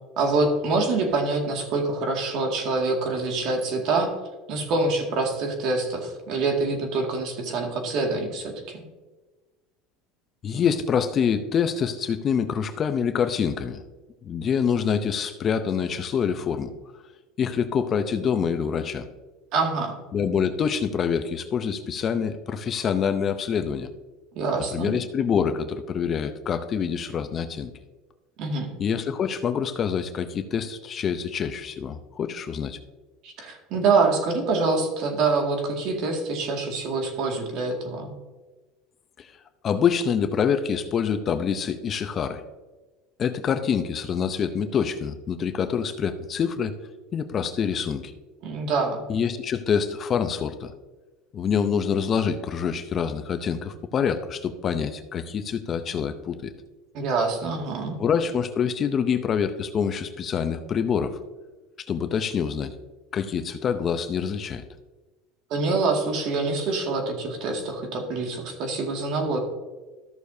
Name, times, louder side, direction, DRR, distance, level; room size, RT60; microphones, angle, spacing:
voice 1, 0.2-4.1 4.5-8.8 19.5-19.9 24.3-24.9 28.4-28.7 33.2-38.1 48.4-49.0 56.9-58.0 65.5-69.4, right 3 dB, 55° right, 2 dB, 2.1 m, -25 dB
voice 2, 10.4-13.8 14.2-16.7 17.4-19.0 20.1-23.9 24.7-27.7 28.8-32.8 39.2-39.3 39.6-42.4 43.2-46.8 47.1-48.1 49.1-50.7 51.3-56.5 58.0-61.2 61.9-62.7 63.1-64.6, left 7 dB, 30° left, 8 dB, 0.6 m, -26 dB
14.0 x 6.5 x 2.7 m, 1.2 s
supercardioid pair, 135°, 0 cm